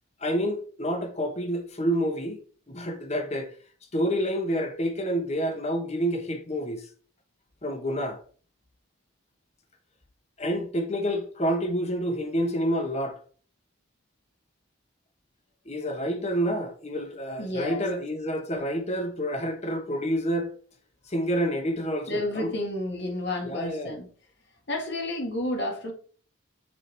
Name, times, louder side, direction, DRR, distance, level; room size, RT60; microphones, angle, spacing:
voice 1, 0.2-2.4 2.7-3.5 3.9-6.9 7.6-8.2 10.4-13.2 15.7-20.5 21.1-22.5 23.4-24.0, equal, 30° left, 1.2 m, -28 dB
voice 2, 17.4-17.8 22.1-24.1 24.7-25.9, left 1 dB, 55° left, 1.9 m, -31 dB
7.3 x 4.7 x 3.4 m
head